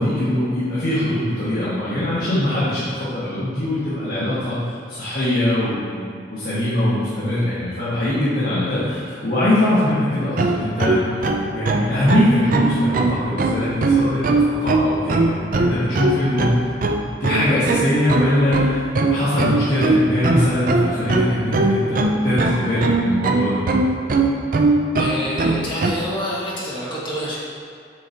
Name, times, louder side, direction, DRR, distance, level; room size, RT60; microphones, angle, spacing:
voice 1, 0.0-4.6 4.9-16.5 17.2-22.0 22.2-23.6, left 1 dB, 55° left, -11 dB, 1.4 m, -22 dB
sound 1, 10.4-25.9, right 2 dB, 50° right, 0.4 m, -19 dB
voice 2, 24.9-27.4, equal, 30° left, -8 dB, 1.5 m, -27 dB
7.5 x 4.8 x 2.8 m, 2.3 s
head